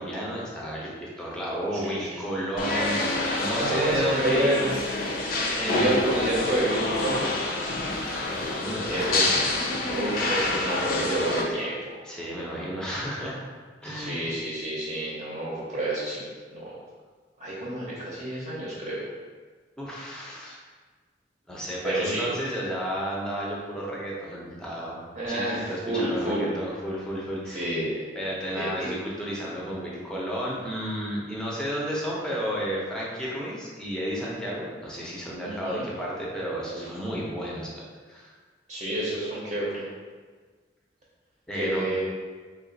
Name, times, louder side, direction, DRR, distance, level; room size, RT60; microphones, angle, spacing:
voice 1, 0.0-4.7 5.6-6.0 8.2-9.3 12.0-13.4 13.8-14.3 19.8-20.6 21.5-25.0 25.3-25.4 25.7-27.7 28.1-38.3 41.5-41.8, equal, 5° left, -5 dB, 0.7 m, -32 dB
voice 2, 1.7-2.1 3.6-4.6 5.7-7.2 8.9-9.2 9.9-11.8 13.8-16.8 17.4-19.0 21.8-22.3 25.2-26.5 27.5-27.9 28.5-28.9 35.4-35.9 36.7-36.9 38.7-39.8 41.6-42.0, right 1 dB, 35° right, -6 dB, 0.7 m, -29 dB
sound 1, 2.6-11.4, left 2 dB, 55° left, 0.5 m, -27 dB
3.5 x 2.4 x 3.9 m, 1.5 s
head